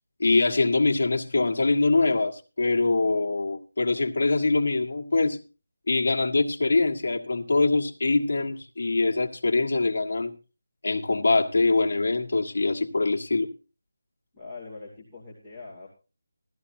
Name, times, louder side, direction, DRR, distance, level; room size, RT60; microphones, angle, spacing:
voice 1, 0.2-5.4 5.9-10.3 10.8-13.5, left 3 dB, 50° left, 1.7 m, -23 dB
voice 2, 14.3-15.9, left 3 dB, 5° right, 2.5 m, -43 dB
17.5 x 14.0 x 2.7 m
figure-of-eight pair, 175°, 0 cm